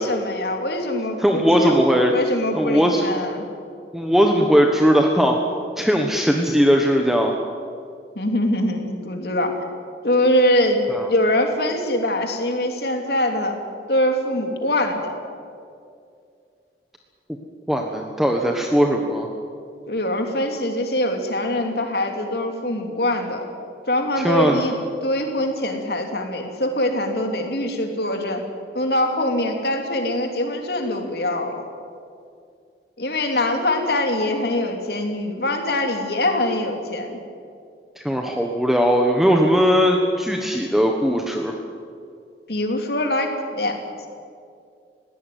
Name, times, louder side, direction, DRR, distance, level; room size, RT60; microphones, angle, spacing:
voice 1, 0.0-1.7 2.1-3.4 8.1-9.6 10.0-10.8 11.1-13.6 13.9-15.2 19.9-23.4 23.9-24.7 25.0-28.4 28.7-31.6 33.0-37.2 42.5-43.8, left 1 dB, 65° left, 4 dB, 3.0 m, -23 dB
voice 2, 1.2-2.1 2.5-3.0 3.9-5.4 5.8-7.3 10.9-11.1 17.7-19.3 24.2-24.6 38.0-41.5, equal, ahead, 2 dB, 1.3 m, -19 dB
20.5 x 17.0 x 9.4 m, 2.3 s
head